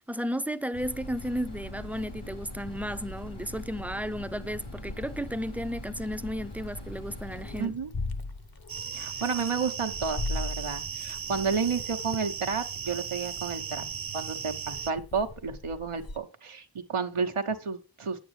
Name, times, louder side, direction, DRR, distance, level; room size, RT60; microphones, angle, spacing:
voice 1, 0.1-7.7, equal, 5° right, 0.5 m, -33 dB
sound 1, 0.7-7.7, left 1 dB, 80° left, 3.5 m, -42 dB
Meow, 4.9-16.2, left 3 dB, 45° left, 1.0 m, -40 dB
voice 2, 7.6-7.9 8.9-13.8 14.1-18.2, right 5 dB, 85° right, 1.0 m, -31 dB
sound 2, 8.7-14.9, right 7 dB, 45° right, 0.6 m, -37 dB
8.9 x 8.4 x 3.2 m
wide cardioid pair, 40°, 49 cm